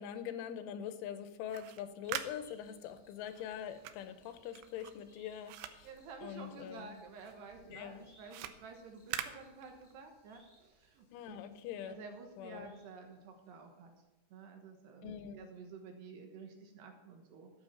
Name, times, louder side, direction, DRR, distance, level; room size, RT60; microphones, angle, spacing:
voice 1, 0.0-5.9 6.2-7.0 7.7-8.1 11.1-12.0 12.4-12.7 15.0-15.5, left 9 dB, 80° left, 10 dB, 3.2 m, -43 dB
sound 1, 1.3-6.9 7.2-10.1, right 11 dB, 85° right, 2.3 m, -45 dB
sound 2, 2.0-13.7 14.0-14.1, left 1 dB, 15° left, 1.1 m, -69 dB
voice 2, 5.8-11.4 11.9-13.9 14.3-17.5, right 4 dB, 70° right, 3 dB, 3.1 m, -51 dB
12.5 x 8.6 x 5.9 m, 1.1 s
omnidirectional pair, 5.6 m